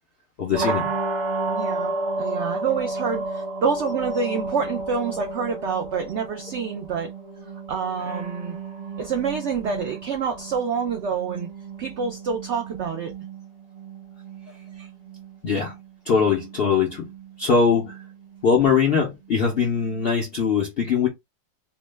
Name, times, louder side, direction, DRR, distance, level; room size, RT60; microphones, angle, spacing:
voice 1, 0.4-0.9 15.4-15.7 16.1-17.1 17.4-18.0 18.4-21.1, left 6 dB, 70° left, 0.5 m, -21 dB
sound 1, 0.5-20.4, right 3 dB, 50° right, 1.0 m, -33 dB
voice 2, 1.5-7.1 7.7-8.6 9.0-11.5 11.8-13.1 14.7-14.9, right 5 dB, 80° right, 0.6 m, -27 dB
2.9 x 2.1 x 3.2 m
omnidirectional pair, 1.8 m